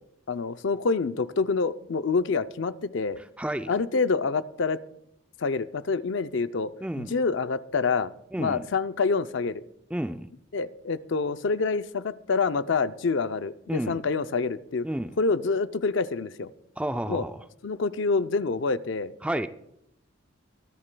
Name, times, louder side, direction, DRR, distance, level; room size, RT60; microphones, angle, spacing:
voice 1, 0.3-3.2 3.7-4.8 5.4-6.7 7.0-8.1 8.4-9.6 10.5-14.9 15.2-16.5 17.1-17.2 17.6-19.1, left 4 dB, 65° left, 12 dB, 0.5 m, -27 dB
voice 2, 3.2-3.7 6.8-7.1 8.3-8.6 9.9-10.3 13.7-14.0 14.8-15.1 16.8-17.4 19.2-19.5, right 1 dB, 5° right, 9 dB, 0.3 m, -31 dB
23.5 x 11.0 x 2.2 m, 0.78 s
head